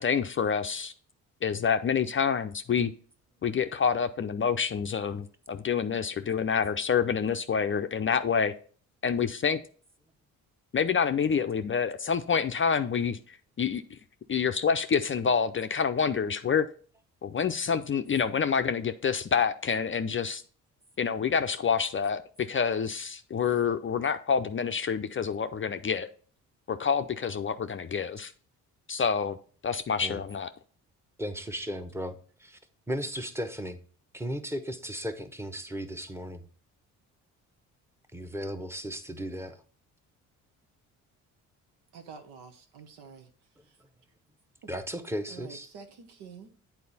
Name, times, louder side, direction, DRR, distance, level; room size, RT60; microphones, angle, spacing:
voice 1, 0.0-0.9 1.4-2.9 3.4-8.5 9.0-9.6 10.7-13.2 13.6-14.0 14.3-16.7 17.2-20.4 21.0-26.1 26.7-28.3 28.9-29.4 29.6-30.5, left 6 dB, 30° left, 8 dB, 0.5 m, -27 dB
voice 2, 31.2-32.1 32.4-32.6 32.9-33.8 34.1-36.4 38.1-39.6 44.7-45.7, equal, 5° right, 8 dB, 1.0 m, -35 dB
voice 3, 41.9-43.3 43.6-43.8 45.3-46.5, right 6 dB, 70° right, 6 dB, 1.1 m, -48 dB
8.4 x 4.3 x 4.1 m, 0.43 s
hypercardioid pair, 50°, 40 cm